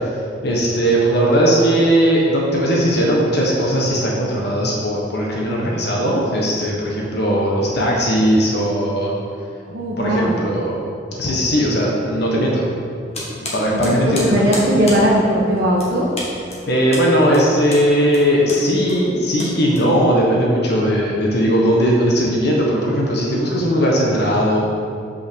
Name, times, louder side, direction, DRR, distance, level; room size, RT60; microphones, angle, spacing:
voice 1, 0.4-9.1 10.0-10.8 11.2-12.7 13.3-14.5 16.7-24.6, equal, 65° left, -3 dB, 1.2 m, -18 dB
voice 2, 9.7-10.4 13.7-16.1, equal, 55° right, -6 dB, 1.1 m, -18 dB
sound 1, 13.1-20.3, left 1 dB, 35° left, 1.7 m, -32 dB
5.8 x 5.6 x 6.2 m, 2.4 s
head